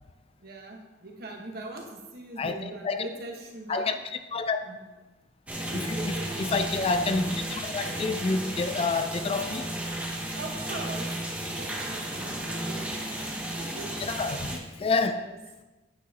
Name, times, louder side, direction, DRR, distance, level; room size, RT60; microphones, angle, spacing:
voice 1, 0.4-3.9 4.6-4.8 5.7-6.3 10.3-11.0 11.5-12.8 13.6-13.9 15.0-15.3, right 2 dB, 50° right, 1 dB, 1.3 m, -41 dB
voice 2, 2.4-3.1 3.7-4.6 5.7-9.7 14.0-15.3, left 3 dB, 30° left, 9 dB, 0.3 m, -29 dB
sound 1, 5.5-14.6, right 1 dB, 5° right, 0.9 m, -33 dB
9.1 x 8.0 x 2.9 m, 1.2 s
head